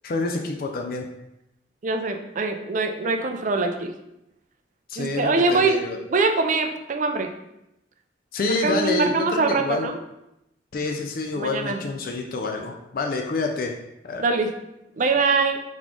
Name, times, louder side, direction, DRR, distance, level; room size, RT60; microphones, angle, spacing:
voice 1, 0.0-1.1 4.9-6.0 8.3-9.9 10.7-13.8 14.0-14.2, left 3 dB, 50° left, 3 dB, 0.4 m, -27 dB
voice 2, 1.8-3.9 5.0-5.8 6.1-7.3 8.5-10.0 11.3-11.8 14.2-14.5 15.0-15.6, right 3 dB, 40° right, 6 dB, 0.4 m, -23 dB
3.9 x 3.0 x 3.6 m, 0.87 s
head